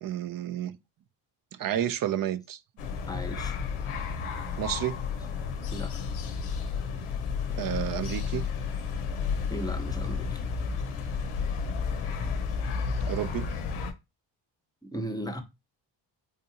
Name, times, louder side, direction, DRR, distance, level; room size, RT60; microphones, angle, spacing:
voice 1, 0.0-0.8 1.5-2.6 4.6-5.0 7.6-8.5 13.1-13.5, right 11 dB, 45° right, 0.4 m, -30 dB
sound 1, 2.8-13.9, left 5 dB, 90° left, 0.7 m, -32 dB
voice 2, 3.0-3.6 5.7-6.0 9.5-10.4 14.9-15.4, equal, 10° left, 0.7 m, -36 dB
3.6 x 2.7 x 2.7 m
cardioid pair, 65°, 48 cm